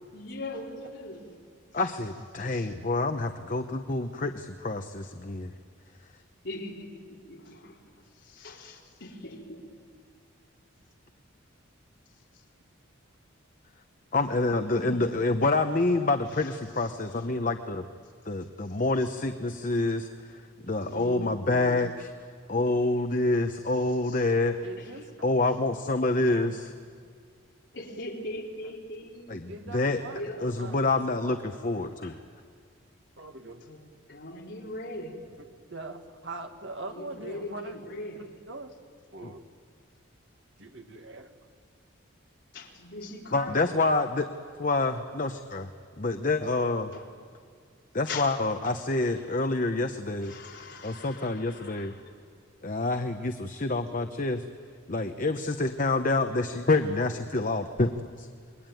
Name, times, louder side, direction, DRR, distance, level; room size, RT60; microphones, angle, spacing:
voice 1, 0.1-1.3 1.7-1.9 2.4-2.7 6.4-7.8 8.1-9.7 12.3-12.4 14.5-15.1 16.3-17.3 20.9-21.8 23.5-24.3 24.8-25.1 26.3-26.5 27.7-30.6 31.9-32.2 33.6-33.8 34.1-35.3 36.9-38.3 42.5-43.6 46.3-46.4 46.9-47.1 48.1-49.3 50.2-52.1, left 1 dB, 55° left, -2 dB, 4.2 m, -41 dB
voice 2, 1.7-5.5 14.1-17.8 18.3-20.1 20.7-22.1 22.5-24.7 25.2-26.7 29.3-30.0 30.4-32.1 39.2-39.3 43.3-44.3 44.6-45.7 46.0-46.9 47.9-50.3 50.8-51.9 52.6-54.4 54.9-58.3, left 2 dB, 40° left, 7 dB, 0.9 m, -27 dB
voice 3, 20.6-21.0 24.6-25.1 26.1-26.7 29.5-30.3 30.6-30.9 31.5-31.6 33.2-33.6 35.7-37.8 38.2-38.7 39.1-39.4 40.6-41.3, right 2 dB, 60° right, 5 dB, 2.0 m, -42 dB
28.0 x 22.0 x 9.2 m, 2.2 s
head